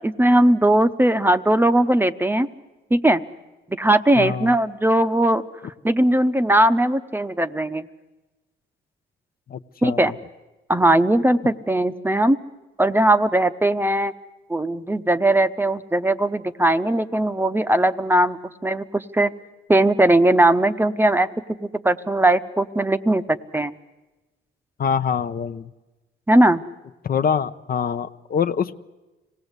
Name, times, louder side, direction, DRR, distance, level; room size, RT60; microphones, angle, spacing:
voice 1, 0.0-2.5 2.9-3.2 3.8-5.4 5.8-7.8 9.8-10.1 10.7-12.4 12.8-14.1 14.5-19.3 19.7-21.3 21.6-23.7 26.3-26.6, right 1 dB, 10° right, 11 dB, 0.8 m, -19 dB
voice 2, 4.2-4.5 9.5-10.1 24.8-25.7 27.0-28.8, left 7 dB, 50° left, 10 dB, 0.7 m, -25 dB
25.5 x 18.0 x 8.1 m, 1.1 s
cardioid pair, 90°, 20 cm